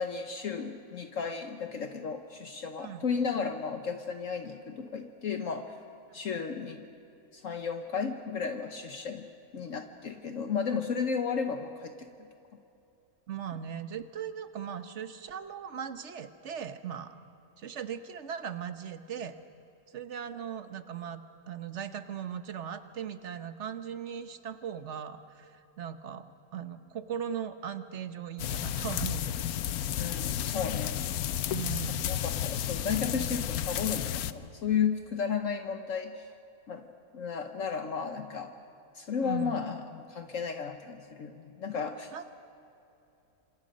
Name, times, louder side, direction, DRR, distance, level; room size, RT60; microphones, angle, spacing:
voice 1, 0.0-5.8 6.1-6.9 7.3-12.1 30.0-31.1 32.1-36.3 36.7-36.9 37.1-38.5 38.9-42.2, left 6 dB, 60° left, 6 dB, 1.3 m, -34 dB
voice 2, 13.3-17.2 17.6-19.3 19.9-21.2 21.5-26.3 26.5-29.4 31.5-32.1 39.2-39.6 42.1-42.2, right 8 dB, 55° right, 10 dB, 1.3 m, -38 dB
sound 1, 28.4-34.3, left 11 dB, 80° left, 1.2 m, -32 dB
27.0 x 26.0 x 5.3 m, 2.8 s
omnidirectional pair, 1.6 m